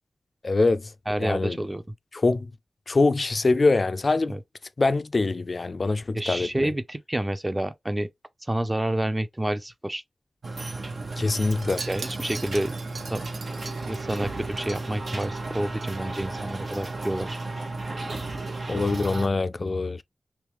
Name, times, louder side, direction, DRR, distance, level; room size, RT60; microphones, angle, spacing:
voice 1, 0.4-0.9 1.2-1.6 2.1-2.5 2.9-4.4 4.8-6.7 11.2-11.8 18.7-20.0, left 3 dB, 50° left, 0.4 m, -24 dB
voice 2, 1.1-1.8 4.3-4.4 6.1-8.1 8.5-10.0 11.9-12.8 13.1-13.2 13.9-17.4, right 1 dB, 20° right, 0.6 m, -29 dB
sound 1, 10.4-19.3, right 3 dB, 70° right, 1.0 m, -34 dB
Wind chime, 11.4-15.9 16.2-16.5 16.7-16.8, right 4 dB, 90° right, 0.7 m, -42 dB
3.4 x 3.1 x 3.0 m
wide cardioid pair, 95°, 0 cm